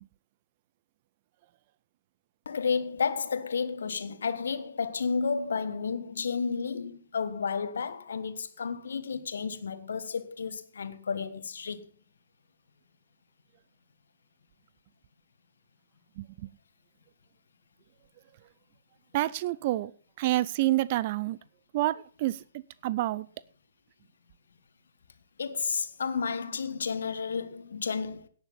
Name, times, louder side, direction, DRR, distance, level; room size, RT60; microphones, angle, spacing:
voice 1, 2.4-11.9 25.4-28.3, left 5 dB, 65° left, 1.3 m, -32 dB
voice 2, 16.2-16.5 19.1-19.9 20.2-21.4 21.7-23.3, right 16 dB, 40° right, 0.5 m, -28 dB
17.0 x 6.7 x 5.6 m
figure-of-eight pair, 120°, 0 cm